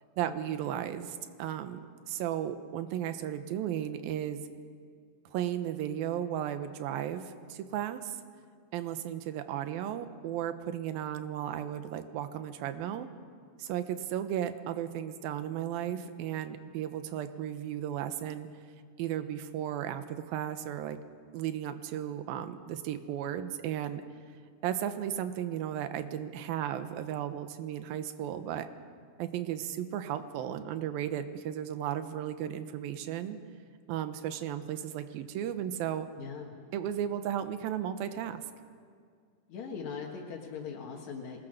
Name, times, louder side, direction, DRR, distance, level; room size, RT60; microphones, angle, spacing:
voice 1, 0.2-1.8 2.1-4.4 5.3-8.2 8.7-13.1 13.6-18.5 19.0-21.0 21.3-24.0 24.6-28.7 29.2-33.4 33.9-36.1 36.7-38.4, right 10 dB, 75° right, 9 dB, 2.8 m, -35 dB
voice 2, 36.2-36.5 39.5-41.4, left 6 dB, 55° left, -2 dB, 2.6 m, -40 dB
27.0 x 20.5 x 6.6 m, 2.1 s
omnidirectional pair, 4.4 m